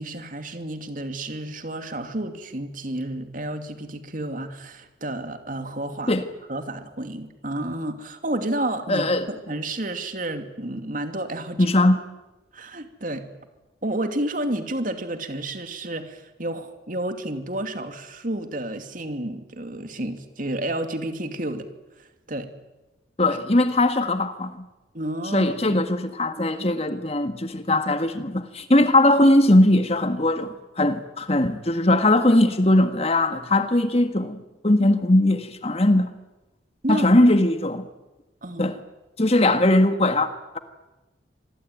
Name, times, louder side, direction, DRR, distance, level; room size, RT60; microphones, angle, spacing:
voice 1, 0.0-6.2 6.5-11.7 12.5-13.3 13.8-21.7 22.0-22.5 24.9-25.8 36.8-37.1 38.4-38.7, right 1 dB, 45° right, 2.6 m, -31 dB
voice 2, 8.9-9.3 11.6-12.0 23.2-24.6 25.3-36.1 36.9-37.9 38.6-38.8 39.2-40.3, left 1 dB, 35° left, 1.7 m, -20 dB
26.5 x 21.0 x 9.4 m
head